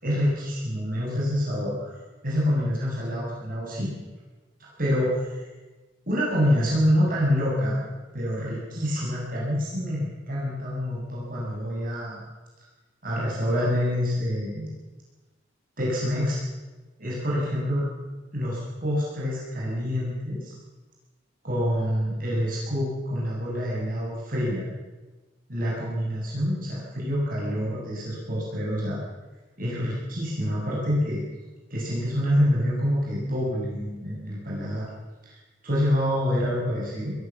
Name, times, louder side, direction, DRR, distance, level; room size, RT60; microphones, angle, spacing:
voice 1, 0.0-1.9 2.2-3.9 4.8-5.4 6.1-7.8 8.1-12.2 13.0-14.7 15.8-16.4 17.0-17.9 18.3-20.5 21.4-24.7 25.5-29.0 29.6-31.2 31.7-34.9 35.2-35.4 35.6-37.1, equal, 50° right, -5 dB, 7.4 m, -26 dB
22.5 x 16.0 x 7.5 m, 1.2 s
head